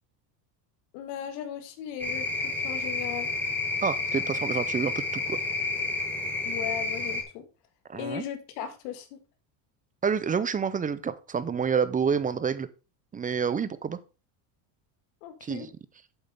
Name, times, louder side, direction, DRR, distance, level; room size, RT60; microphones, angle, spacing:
voice 1, 0.9-3.3 6.4-7.4 7.9-9.2 15.2-15.7, left 9 dB, 75° left, 1.9 m, -37 dB
sound 1, 2.0-7.2, left 3 dB, 5° left, 2.0 m, -30 dB
voice 2, 3.8-5.4 7.9-8.2 10.0-12.7 13.1-14.0 15.4-15.7, right 6 dB, 15° right, 0.5 m, -28 dB
8.0 x 7.5 x 3.5 m
supercardioid pair, 115°, 49 cm